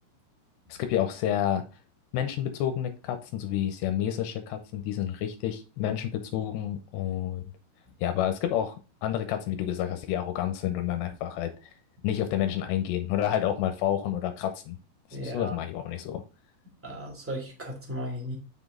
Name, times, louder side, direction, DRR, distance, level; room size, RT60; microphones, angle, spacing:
voice 1, 0.7-1.6 2.1-7.4 8.0-11.5 12.0-14.8 15.2-16.2, left 11 dB, 85° left, 2.9 m, -29 dB
voice 2, 15.1-15.5 16.8-18.4, equal, 5° right, 1.5 m, -35 dB
7.3 x 6.2 x 3.7 m
omnidirectional pair, 5.0 m